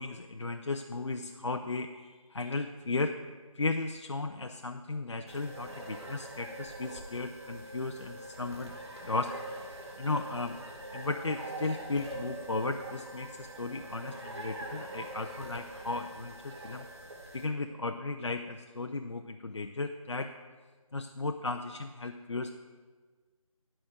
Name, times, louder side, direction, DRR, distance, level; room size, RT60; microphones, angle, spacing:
voice 1, 0.0-3.2 3.5-8.7 9.0-9.3 10.0-10.6 10.9-16.9 17.3-20.3 20.9-22.5, left 3 dB, 55° left, 5 dB, 0.4 m, -35 dB
sound 1, 5.3-17.4, right 1 dB, 50° right, 2.0 m, -44 dB
11.5 x 5.0 x 6.3 m, 1.4 s
figure-of-eight pair, 160°, 18 cm